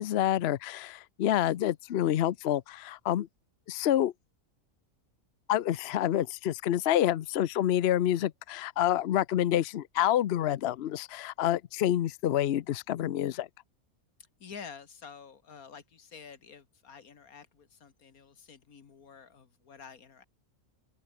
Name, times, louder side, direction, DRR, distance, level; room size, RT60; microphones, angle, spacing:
voice 1, 0.0-3.3 3.7-4.1 5.5-13.5, left 12 dB, 60° left, 0.7 m, -28 dB
voice 2, 14.4-20.2, left 6 dB, 80° left, 2.1 m, -49 dB
open air
omnidirectional pair, 1.5 m